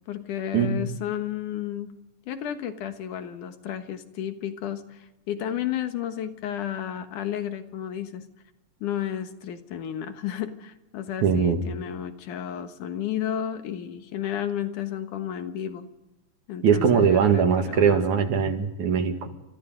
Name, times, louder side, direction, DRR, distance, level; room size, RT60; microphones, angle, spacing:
voice 1, 0.1-2.0 2.3-8.3 8.8-15.9 16.5-18.3, left 10 dB, 80° left, 8 dB, 2.9 m, -32 dB
voice 2, 11.2-11.6 16.6-19.3, right 6 dB, 70° right, 6 dB, 3.2 m, -21 dB
29.5 x 26.0 x 3.9 m, 1.0 s
omnidirectional pair, 3.5 m